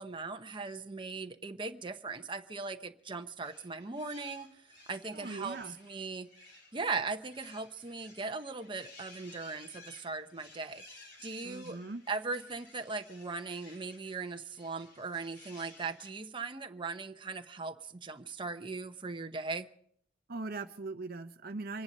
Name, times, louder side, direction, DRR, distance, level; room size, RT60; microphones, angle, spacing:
voice 1, 0.0-4.5 4.9-6.3 6.7-10.8 11.2-11.8 12.1-19.7, right 4 dB, 25° right, 0.9 m, -39 dB
sound 1, 3.4-16.1, left 2 dB, 75° left, 6.7 m, -56 dB
voice 2, 5.1-5.7 11.4-12.0 20.3-21.8, right 3 dB, 55° right, 0.8 m, -40 dB
25.5 x 10.5 x 5.4 m
head